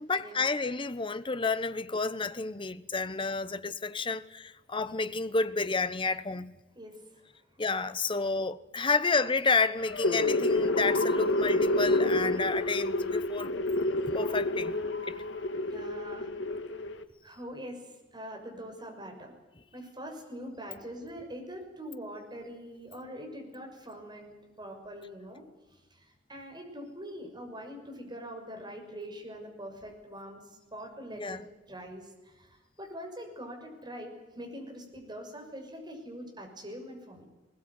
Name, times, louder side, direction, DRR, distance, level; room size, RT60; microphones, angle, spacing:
voice 1, 0.0-6.5 7.6-13.5 14.1-14.8 15.1-15.2 31.1-31.4, left 4 dB, 25° left, 1.0 m, -30 dB
voice 2, 6.7-7.3 15.7-16.3 17.2-19.3 19.7-25.4 25.7-31.4 31.7-37.2, equal, 25° right, 6.2 m, -43 dB
sound 1, 9.8-17.0, left 2 dB, 75° left, 1.7 m, -28 dB
21.0 x 20.0 x 9.6 m
head